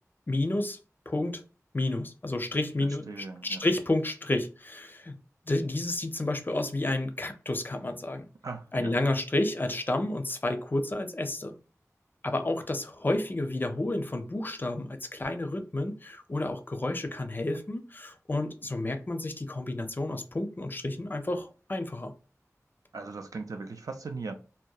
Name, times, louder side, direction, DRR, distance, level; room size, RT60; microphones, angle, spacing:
voice 1, 0.3-0.8 1.1-1.4 1.7-5.2 5.5-8.2 8.7-11.5 12.2-22.1, left 2 dB, 35° left, 0.4 m, -30 dB
voice 2, 2.8-3.6 8.4-8.9 22.9-24.3, right 4 dB, 85° right, 0.4 m, -39 dB
2.7 x 2.1 x 2.2 m
wide cardioid pair, 60°, 6 cm